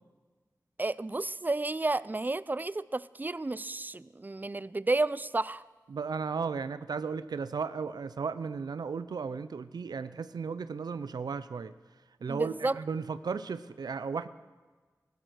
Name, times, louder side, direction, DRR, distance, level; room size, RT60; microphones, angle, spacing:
voice 1, 0.8-5.6 12.3-12.8, right 2 dB, 25° right, 18 dB, 0.4 m, -31 dB
voice 2, 5.9-11.7 12.2-14.3, right 5 dB, 90° right, 14 dB, 0.5 m, -35 dB
15.0 x 12.0 x 6.4 m, 1.4 s
wide cardioid pair, 55°, 7 cm